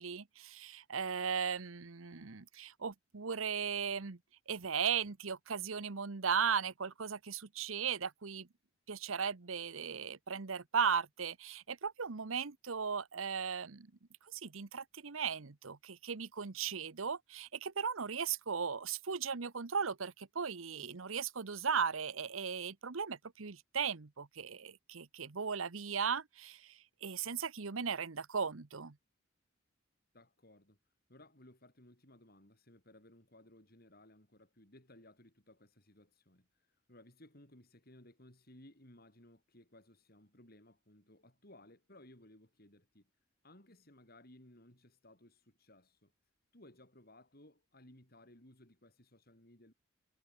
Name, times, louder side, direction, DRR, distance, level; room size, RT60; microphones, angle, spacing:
voice 1, 0.0-4.2 4.5-8.5 8.9-13.9 14.3-28.9, right 6 dB, 90° right, 1.0 m, -37 dB
voice 2, 30.1-30.8 31.1-43.1 43.4-46.1 46.5-49.7, left 1 dB, 50° left, 6.8 m, -60 dB
head